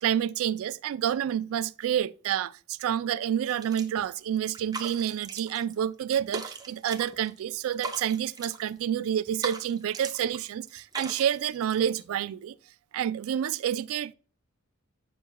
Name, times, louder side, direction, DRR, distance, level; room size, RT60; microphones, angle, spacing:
voice 1, 0.0-12.6 12.9-14.1, right 9 dB, 70° right, 0.3 m, -29 dB
sound 1, 3.5-4.1 4.4-5.7 6.0-7.4 7.7-8.7 9.2-10.4 10.7-12.0, right 3 dB, 20° right, 0.7 m, -40 dB
8.9 x 6.4 x 2.2 m
head